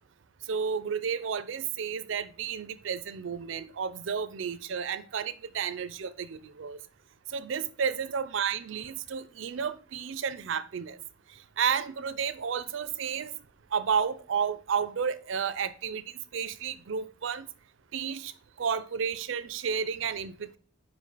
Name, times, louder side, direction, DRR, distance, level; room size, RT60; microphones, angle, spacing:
voice 1, 0.4-6.8 7.3-11.0 11.3-13.4 13.7-17.5 17.9-20.6, right 7 dB, 65° right, 0.4 m, -32 dB
5.2 x 4.9 x 4.0 m
head